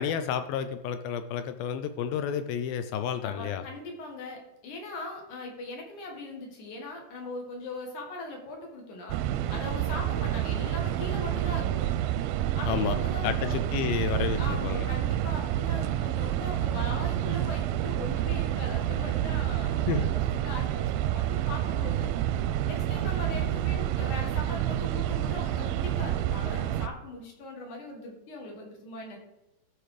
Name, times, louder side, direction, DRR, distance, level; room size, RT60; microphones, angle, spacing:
voice 1, 0.0-3.6 12.6-14.9 19.9-20.1, left 8 dB, 80° left, 10 dB, 2.3 m, -31 dB
voice 2, 3.2-9.2 9.5-11.9 12.6-13.6 14.3-22.1 22.6-29.2, left 2 dB, 55° left, 1 dB, 3.2 m, -40 dB
sound 1, 9.1-26.9, right 12 dB, 80° right, 2.2 m, -28 dB
13.5 x 5.0 x 4.9 m, 0.90 s
omnidirectional pair, 4.4 m